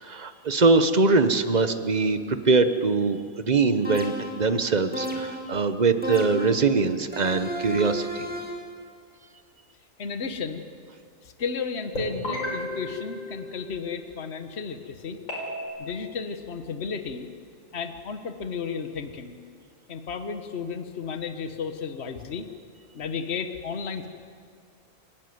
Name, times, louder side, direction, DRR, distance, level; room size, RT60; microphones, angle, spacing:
voice 1, 0.0-8.3, right 4 dB, 35° right, 10 dB, 1.1 m, -22 dB
sound 1, 3.8-4.5 4.9-5.6 6.0-6.7 7.1-8.7, equal, 5° right, 2.2 m, -33 dB
voice 2, 10.0-10.6 11.2-15.2 15.8-17.3 17.7-19.4 19.9-22.5 22.9-24.1, left 5 dB, 50° left, 8 dB, 1.5 m, -33 dB
sound 2, 11.9-14.1 15.3-15.7, left 1 dB, 80° left, 5.8 m, -33 dB
28.5 x 11.5 x 9.5 m, 2.3 s
omnidirectional pair, 1.4 m